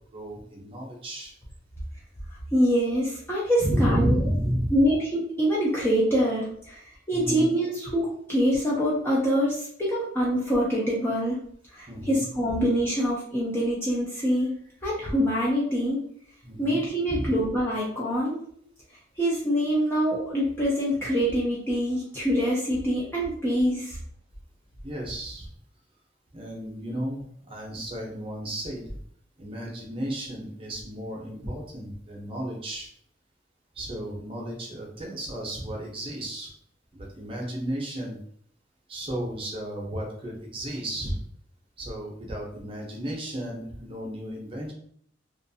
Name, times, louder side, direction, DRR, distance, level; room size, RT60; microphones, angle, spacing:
voice 1, 0.1-1.3 3.6-4.7 7.1-7.5 11.9-12.2 12.5-12.6 16.4-16.8 17.1-17.3 24.8-25.5 26.3-29.0 29.4-32.9 33.7-36.5 36.9-38.2 38.9-41.2 41.8-44.7, equal, 30° right, -2 dB, 0.7 m, -32 dB
voice 2, 2.3-4.2 4.7-11.4 11.7-14.5 14.8-16.0 16.6-18.5 19.2-24.0, equal, 10° left, -6 dB, 0.5 m, -25 dB
2.5 x 2.3 x 2.6 m, 0.64 s
head